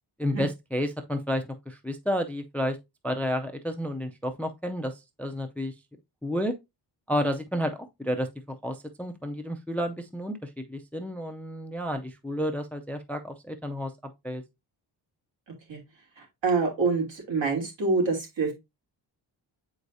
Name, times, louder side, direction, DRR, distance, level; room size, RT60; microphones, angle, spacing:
voice 1, 0.2-2.8 3.0-5.7 6.2-6.5 7.1-14.4, equal, 5° left, 0.4 m, -31 dB
voice 2, 16.2-18.5, right 4 dB, 75° right, 3.0 m, -26 dB
7.6 x 4.8 x 2.6 m
wide cardioid pair, 180°, 44 cm